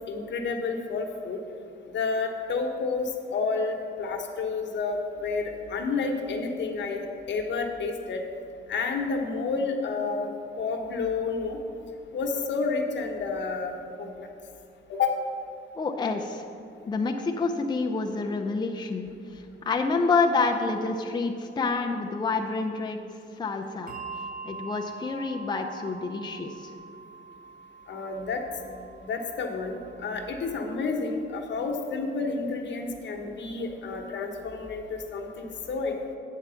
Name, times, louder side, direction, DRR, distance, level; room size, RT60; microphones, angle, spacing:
voice 1, 0.1-1.4 1.9-8.2 8.7-10.3 10.6-11.6 12.1-14.3 14.9-15.1 27.9-28.4 29.0-35.9, left 4 dB, 70° left, 3 dB, 1.0 m, -30 dB
voice 2, 15.8-16.5 16.8-23.0 23.4-23.9 24.4-26.7, left 4 dB, 25° left, 3 dB, 0.5 m, -28 dB
Bell, 23.9-30.7, right 4 dB, 50° right, 0.5 m, -44 dB
8.6 x 4.6 x 6.9 m, 2.5 s
cardioid pair, 115°, 19 cm